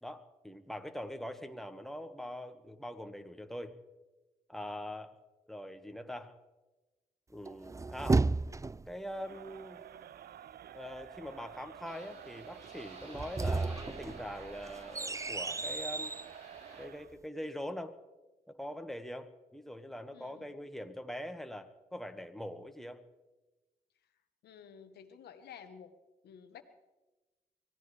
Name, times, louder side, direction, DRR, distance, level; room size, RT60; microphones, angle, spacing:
voice 1, 0.0-3.8 4.5-5.2 5.5-6.4 7.3-8.3 8.9-9.8 10.7-16.1 16.8-18.0 18.5-23.0, equal, ahead, 6 dB, 1.7 m, -43 dB
sound 1, 7.5-9.0 13.0-16.3, right 3 dB, 20° right, 0.4 m, -33 dB
Crowd, 9.1-17.2, right 10 dB, 70° right, 0.5 m, -51 dB
sound 2, 11.9-16.9, right 1 dB, 40° right, 3.8 m, -54 dB
voice 2, 20.1-20.5 24.4-25.9 26.2-26.6, left 7 dB, 85° left, 8 dB, 1.2 m, -52 dB
24.5 x 16.5 x 3.4 m, 1.1 s
supercardioid pair, 50°, 16 cm